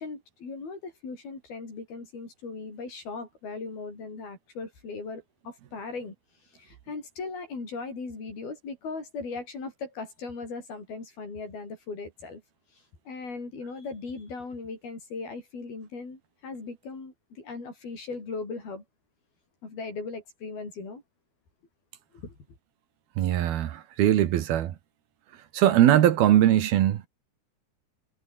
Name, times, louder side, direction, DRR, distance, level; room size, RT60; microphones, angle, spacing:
voice 1, 0.0-6.1 6.5-12.4 13.1-18.8 19.6-21.0 22.1-22.4, left 4 dB, 65° left, 9.8 m, -38 dB
voice 2, 23.2-24.7 25.5-27.1, right 12 dB, 70° right, 3.3 m, -21 dB
omnidirectional pair, 4.6 m